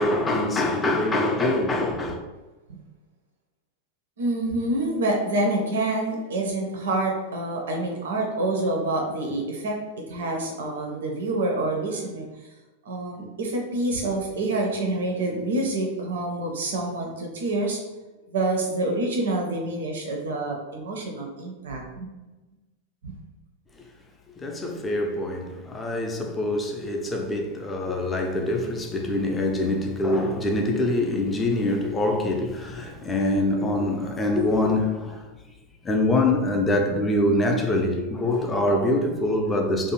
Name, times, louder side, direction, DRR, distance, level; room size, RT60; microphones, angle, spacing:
voice 1, 0.0-2.2 24.4-35.2 35.8-39.9, left 1 dB, 15° left, 0.4 m, -24 dB
voice 2, 4.2-9.8 10.1-12.5 12.9-17.8 18.3-22.1 23.0-23.1, right 2 dB, 60° right, 0.5 m, -27 dB
2.5 x 2.1 x 3.0 m
figure-of-eight pair, 90°, 0 cm